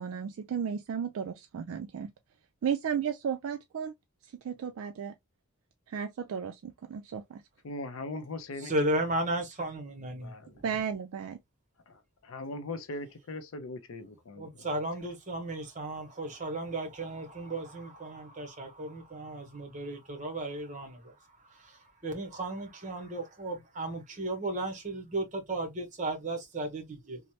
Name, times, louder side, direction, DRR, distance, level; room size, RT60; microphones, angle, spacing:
voice 1, 0.0-2.1 2.6-3.9 4.4-5.1 5.9-7.4 10.6-11.4, right 7 dB, 70° right, 0.3 m, -34 dB
voice 2, 7.6-8.7 10.2-10.6 11.9-14.7, left 2 dB, 65° left, 0.5 m, -40 dB
voice 3, 8.6-10.6 14.4-21.1 21.5-27.2, right 1 dB, 35° right, 0.8 m, -35 dB
3.1 x 2.0 x 2.7 m
head